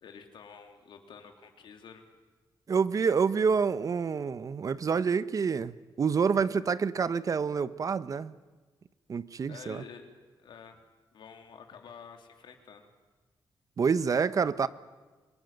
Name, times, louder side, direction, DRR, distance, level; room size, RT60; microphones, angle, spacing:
voice 1, 0.0-2.1 9.5-10.8 11.1-12.9, left 6 dB, 75° left, 5 dB, 3.4 m, -49 dB
voice 2, 2.7-8.3 9.1-9.8 13.8-14.7, right 5 dB, 45° right, 16 dB, 0.9 m, -27 dB
26.0 x 21.5 x 9.1 m, 1.3 s
cardioid pair, 115°, 8 cm